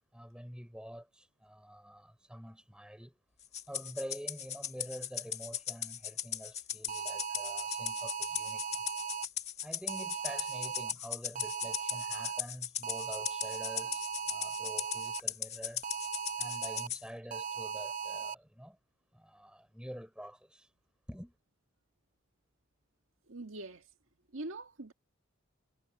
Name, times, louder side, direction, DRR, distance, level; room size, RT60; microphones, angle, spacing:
voice 1, 0.1-3.2 3.7-8.9 9.6-15.9 16.4-18.8 19.1-20.7 21.1-21.3, equal, 5° right, 5.7 m, -47 dB
Rattle (instrument), 3.5-17.0, left 9 dB, 30° left, 1.7 m, -38 dB
sound 1, 6.9-9.3 9.9-10.9 11.3-12.4 12.8-15.2 15.8-16.9 17.3-18.3, right 7 dB, 40° right, 0.7 m, -38 dB
voice 2, 23.3-23.9 24.3-24.9, right 2 dB, 80° right, 1.7 m, -43 dB
head